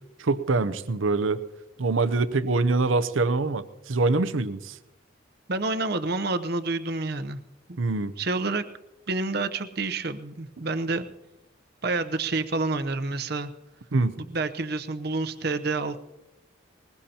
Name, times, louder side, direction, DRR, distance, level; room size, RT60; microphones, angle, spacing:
voice 1, 0.2-1.4 1.8-4.8 7.8-8.1 13.9-14.2, right 3 dB, 85° right, 11 dB, 0.7 m, -24 dB
voice 2, 5.5-7.4 8.2-8.6 9.1-11.1 11.8-13.5 14.2-16.0, right 3 dB, 50° right, 9 dB, 0.8 m, -28 dB
20.5 x 20.5 x 2.9 m, 0.94 s
head